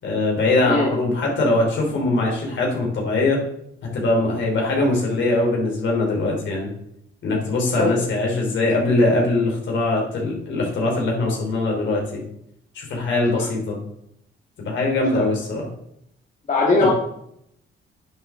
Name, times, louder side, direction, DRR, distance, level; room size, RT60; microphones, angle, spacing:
voice 1, 0.0-3.4 3.8-6.7 7.2-12.2 12.7-13.8 14.6-15.7 16.8-16.9, left 2 dB, 70° left, -1 dB, 4.0 m, -22 dB
voice 2, 16.5-16.9, left 2 dB, 40° left, -3 dB, 2.4 m, -19 dB
10.5 x 7.0 x 3.9 m, 0.74 s
cardioid pair, 90°, 20 cm